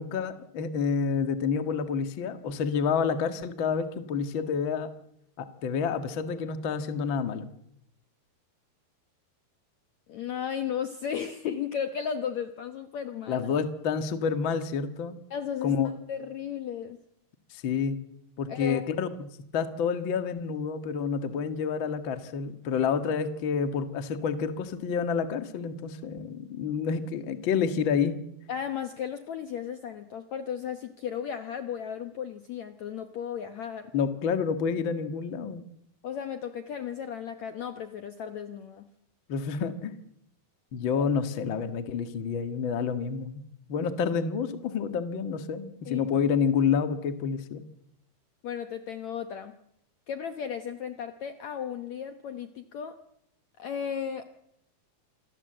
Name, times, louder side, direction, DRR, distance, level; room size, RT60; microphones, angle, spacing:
voice 1, 0.0-4.9 5.4-7.5 13.3-15.1 15.6-15.9 17.5-18.0 18.4-28.2 33.9-35.6 39.3-40.0 40.7-43.4 43.7-47.6, left 6 dB, 50° left, 9 dB, 1.6 m, -29 dB
voice 2, 10.1-13.5 15.3-17.0 18.5-18.9 28.5-33.9 36.0-38.9 40.9-41.0 45.9-46.0 48.4-49.6 50.1-53.0 53.6-54.3, left 8 dB, 65° left, 9 dB, 1.9 m, -35 dB
27.5 x 23.0 x 7.9 m, 0.79 s
omnidirectional pair, 4.4 m